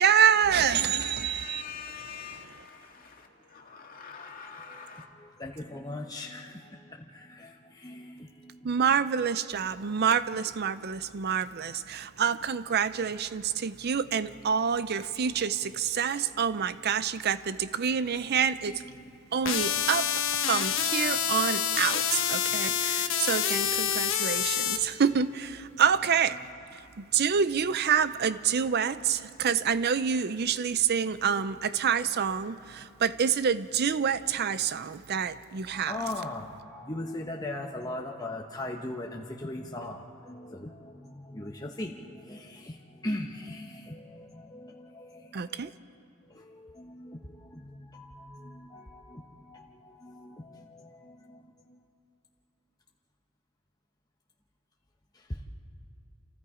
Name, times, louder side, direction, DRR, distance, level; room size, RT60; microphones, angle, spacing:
voice 1, 0.0-1.6 8.6-18.8 19.3-26.4 26.7-36.0 45.3-45.7, right 7 dB, 50° right, 0.5 m, -27 dB
voice 2, 0.5-5.1, left 6 dB, 40° left, 2.4 m, -44 dB
voice 3, 4.7-8.7 18.6-19.1 25.1-25.2 35.7-45.7 46.3-51.8, left 1 dB, 20° left, 1.1 m, -40 dB
sound 1, 19.5-24.8, left 9 dB, 65° left, 1.2 m, -27 dB
28.5 x 28.0 x 5.0 m
head